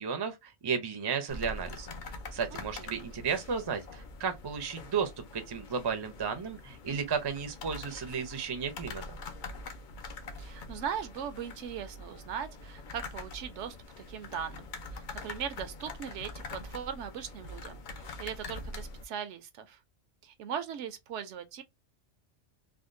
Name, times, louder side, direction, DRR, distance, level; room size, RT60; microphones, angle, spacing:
voice 1, 0.0-1.9 2.3-9.2, right 6 dB, 30° right, 0.4 m, -34 dB
sound 1, 1.3-19.0, left 2 dB, 55° left, 0.6 m, -44 dB
voice 2, 2.5-3.0 10.4-19.8 20.2-21.6, right 8 dB, 75° right, 0.9 m, -39 dB
3.5 x 2.2 x 2.5 m
omnidirectional pair, 1.2 m